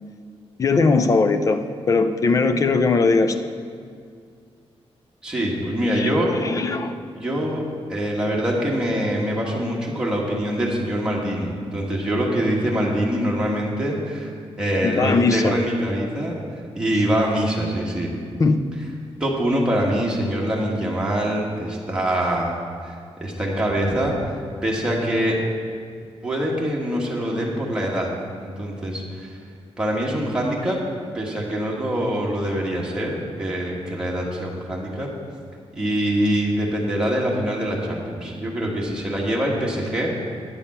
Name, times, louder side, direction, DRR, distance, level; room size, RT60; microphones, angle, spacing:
voice 1, 0.6-3.4 5.9-6.9 14.8-15.5 18.4-18.6, left 4 dB, 30° left, 9 dB, 0.5 m, -20 dB
voice 2, 5.2-6.3 7.1-7.6 7.9-16.4 16.7-18.1 19.2-22.6 22.8-22.9 23.2-24.3 24.6-25.4 26.2-28.1 28.4-29.4 29.8-30.8 31.1-35.1 35.8-40.1, equal, 10° right, -4 dB, 1.5 m, -24 dB
9.6 x 7.1 x 5.6 m, 2.2 s
wide cardioid pair, 170°, 10 cm